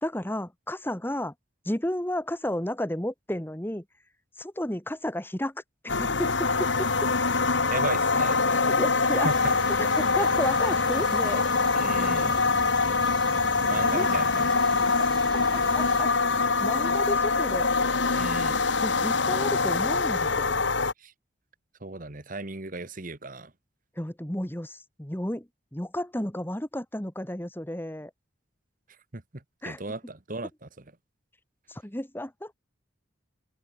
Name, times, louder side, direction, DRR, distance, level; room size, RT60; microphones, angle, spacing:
voice 1, 0.0-1.3 1.6-3.8 4.4-6.9 8.8-9.3 9.8-11.4 13.9-14.1 15.3-16.1 16.6-17.7 18.8-20.5 24.0-28.1 29.6-29.8 31.7-32.5, left 1 dB, 10° left, 1.4 m, -32 dB
sound 1, 5.9-20.9, left 4 dB, 70° left, 1.8 m, -24 dB
voice 2, 7.7-8.8 9.1-9.5 11.7-12.4 13.6-14.9 18.1-18.6 21.0-21.1 21.8-23.5 29.1-30.8, right 2 dB, 45° right, 1.6 m, -36 dB
sound 2, 9.3-16.0, right 1 dB, 25° right, 3.1 m, -42 dB
open air
head